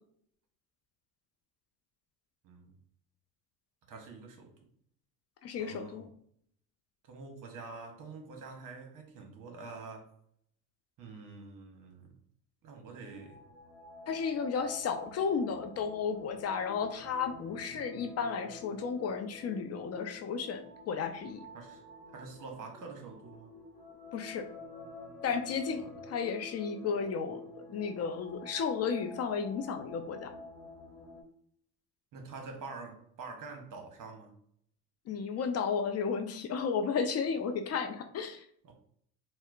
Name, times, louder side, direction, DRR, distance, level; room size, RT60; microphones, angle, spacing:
voice 1, 3.9-4.5 5.6-6.1 7.0-10.1 11.0-12.2 12.6-13.4 21.5-21.8 22.1-23.5 25.8-25.9 32.1-34.3 38.6-38.7, right 4 dB, 45° right, 3 dB, 0.9 m, -46 dB
voice 2, 5.4-6.1 14.1-20.6 20.9-21.4 24.1-24.5 25.2-27.4 27.7-30.3 35.1-38.4, left 6 dB, 35° left, 7 dB, 0.4 m, -33 dB
sound 1, 12.8-31.2, left 2 dB, 50° left, 1.0 m, -49 dB
4.2 x 2.1 x 2.4 m, 0.66 s
hypercardioid pair, 75°, 44 cm